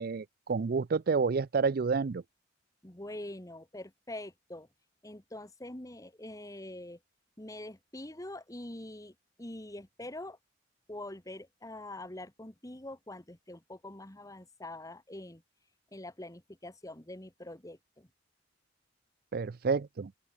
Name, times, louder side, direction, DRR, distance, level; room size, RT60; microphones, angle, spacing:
voice 1, 0.0-2.2 19.3-20.1, right 5 dB, 55° right, 0.4 m, -29 dB
voice 2, 2.8-4.7 5.0-7.0 7.4-10.4 10.9-15.4 15.9-18.1, left 1 dB, 20° left, 1.8 m, -44 dB
open air
head